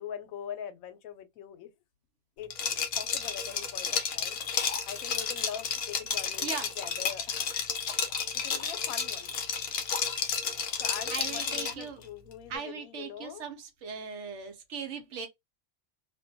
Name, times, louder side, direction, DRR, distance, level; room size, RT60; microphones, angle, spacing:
voice 1, 0.0-1.7 2.4-2.5 3.0-4.4 4.9-7.5 7.9-8.0 8.3-9.3 10.8-13.4, left 9 dB, 85° left, 1.0 m, -42 dB
Liquid, 2.5-11.8, left 6 dB, 60° left, 0.7 m, -32 dB
voice 2, 11.1-12.0 12.5-15.3, right 6 dB, 65° right, 0.9 m, -39 dB
2.5 x 2.2 x 2.6 m
omnidirectional pair, 1.4 m